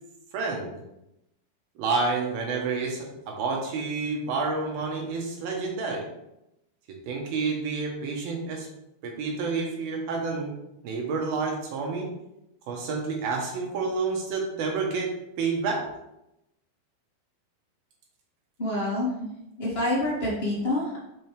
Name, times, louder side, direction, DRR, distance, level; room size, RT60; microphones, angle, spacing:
voice 1, 0.3-0.7 1.8-6.1 7.1-8.7 9.0-10.5 10.8-12.1 12.7-15.1 15.4-15.8, right 4 dB, 70° right, 1 dB, 2.5 m, -29 dB
voice 2, 18.6-19.1 19.6-21.0, left 1 dB, 25° left, -8 dB, 1.3 m, -27 dB
7.5 x 5.9 x 3.4 m, 0.87 s
omnidirectional pair, 5.3 m